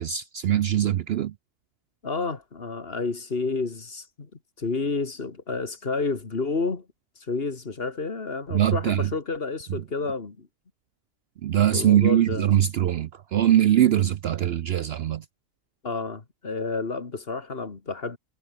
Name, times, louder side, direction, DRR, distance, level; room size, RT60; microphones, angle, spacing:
voice 1, 0.0-1.3 8.5-9.1 11.4-15.2, right 11 dB, 60° right, 0.7 m, -22 dB
voice 2, 2.0-4.3 4.6-6.9 7.3-10.5 11.7-12.5 15.8-18.2, left 4 dB, 45° left, 2.2 m, -30 dB
omnidirectional pair, 1.4 m